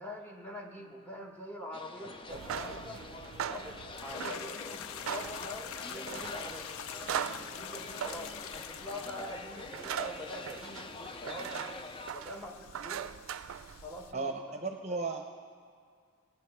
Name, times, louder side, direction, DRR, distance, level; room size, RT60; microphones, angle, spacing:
voice 1, 0.0-3.0 3.5-6.7 7.5-11.6 12.1-13.1 13.8-14.6 14.9-15.0, left 1 dB, 10° left, 0 dB, 1.4 m, -44 dB
sound 1, 1.7-12.1, left 3 dB, 25° left, 0.4 m, -45 dB
sound 2, 2.2-14.1, right 8 dB, 75° right, 0.4 m, -41 dB
voice 2, 2.3-2.6 14.1-15.2, right 3 dB, 30° right, 4 dB, 0.7 m, -36 dB
sound 3, 3.9-14.1, left 9 dB, 85° left, 0.4 m, -46 dB
19.5 x 8.9 x 4.5 m, 2.1 s
head